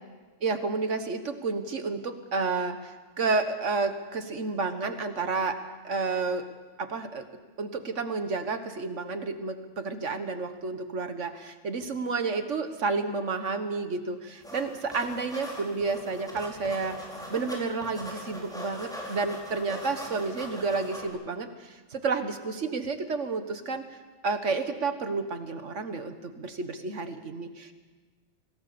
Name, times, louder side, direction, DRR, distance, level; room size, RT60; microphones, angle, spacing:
voice 1, 0.4-5.6 5.8-6.5 6.8-7.3 7.6-23.8 24.2-27.7, right 4 dB, 75° right, 8 dB, 1.8 m, -31 dB
sound 1, 14.4-14.6 14.9-17.6 17.8-21.1, equal, 5° left, 4.8 m, -40 dB
25.0 x 18.0 x 7.0 m, 1.3 s
omnidirectional pair, 1.3 m